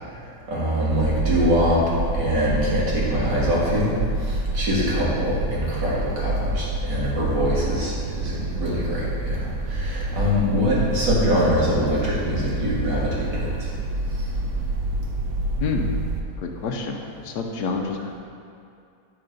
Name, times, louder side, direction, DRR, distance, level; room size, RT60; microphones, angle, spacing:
voice 1, 0.5-1.8 2.1-3.9 4.2-7.9 8.2-13.5, equal, 60° right, -6 dB, 2.3 m, -23 dB
sound 1, 0.9-16.2, right 2 dB, 85° right, 0.6 m, -27 dB
voice 2, 15.6-15.9 16.4-17.0 17.2-18.2, left 4 dB, 65° left, 2 dB, 1.1 m, -28 dB
10.0 x 3.8 x 5.2 m, 2.4 s
omnidirectional pair, 2.2 m